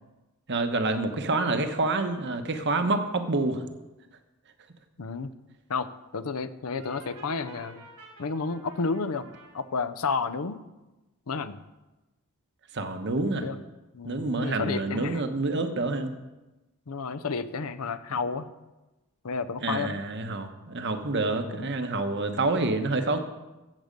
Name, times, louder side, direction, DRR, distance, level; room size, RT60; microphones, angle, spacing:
voice 1, 0.5-3.6 12.7-13.5 14.0-16.1 18.1-18.2 19.6-23.2, right 2 dB, 50° right, 7 dB, 1.0 m, -27 dB
voice 2, 5.0-5.3 5.7-7.8 8.2-9.3 9.5-10.6 11.3-11.6 13.4-13.6 13.9-15.2 16.9-18.4 19.2-20.0 21.4-21.7, left 4 dB, 75° left, 11 dB, 0.7 m, -31 dB
Brass instrument, 6.8-9.5, right 3 dB, 85° right, 3.7 m, -50 dB
14.0 x 7.9 x 5.2 m, 1.1 s
head